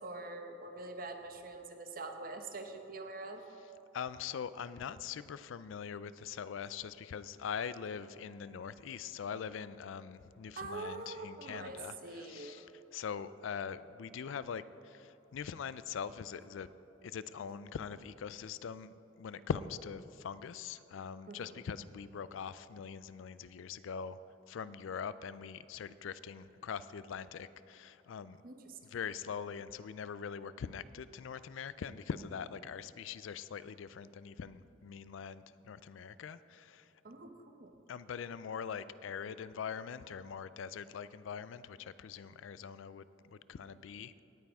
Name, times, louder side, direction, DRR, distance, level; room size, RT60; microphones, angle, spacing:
voice 1, 0.0-3.4 10.6-12.6 21.3-21.5 28.4-28.8 37.0-37.7, right 2 dB, 45° right, 6 dB, 0.8 m, -44 dB
voice 2, 3.9-16.7 17.0-24.2 24.5-28.4 28.8-36.9 37.9-44.2, left 7 dB, 85° left, 16 dB, 0.4 m, -42 dB
18.0 x 9.1 x 3.5 m, 2.9 s
head